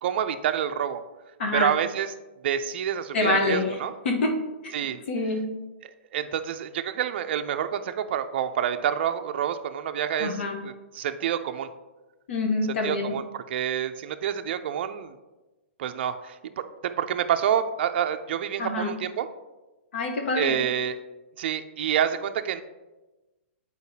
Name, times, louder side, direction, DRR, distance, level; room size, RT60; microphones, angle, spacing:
voice 1, 0.0-1.0 1.5-2.1 2.4-3.9 4.7-5.0 5.8-11.7 12.8-15.1 15.8-16.4 16.8-19.3 20.4-21.0 21.4-22.6, right 9 dB, 55° right, 8 dB, 0.4 m, -28 dB
voice 2, 1.4-1.8 3.1-3.7 4.0-4.3 4.6-4.7 5.1-5.4 10.2-10.6 12.3-13.1 18.6-18.9 19.9-20.6, left 2 dB, 70° left, 2 dB, 1.0 m, -26 dB
7.9 x 4.5 x 2.8 m, 1.1 s
hypercardioid pair, 150°, 7 cm